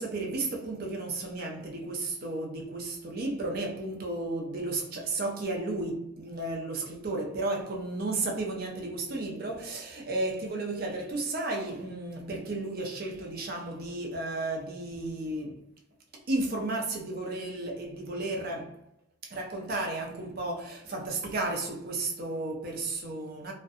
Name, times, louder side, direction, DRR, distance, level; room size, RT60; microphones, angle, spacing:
voice 1, 0.0-15.6 16.3-18.8 19.2-23.5, right 2 dB, 50° right, 0.5 m, -33 dB
2.6 x 2.1 x 2.4 m
head